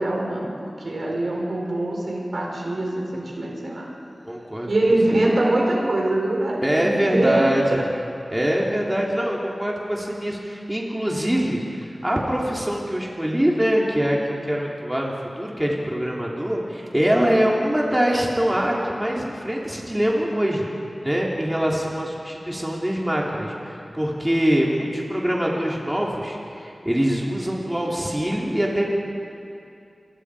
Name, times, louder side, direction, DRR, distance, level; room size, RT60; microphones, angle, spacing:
voice 1, 0.0-3.9 4.7-7.9, right 1 dB, 70° right, -1 dB, 4.8 m, -23 dB
voice 2, 4.2-4.9 6.6-7.8 8.3-20.7 21.0-29.0, equal, 15° right, -3 dB, 3.2 m, -24 dB
28.0 x 23.5 x 5.0 m, 2.6 s
wide cardioid pair, 80°, 0 cm